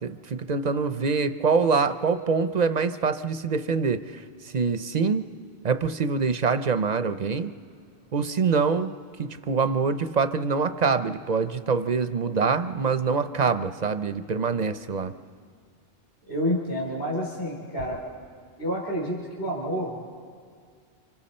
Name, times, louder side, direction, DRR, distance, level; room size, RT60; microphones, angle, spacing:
voice 1, 0.0-5.2 5.6-7.5 8.1-8.9 9.2-15.1, right 5 dB, 45° right, 10 dB, 0.6 m, -25 dB
voice 2, 16.3-18.0 18.6-20.0, equal, 50° left, -4 dB, 3.3 m, -29 dB
30.0 x 25.0 x 4.3 m, 2.1 s
omnidirectional pair, 1.1 m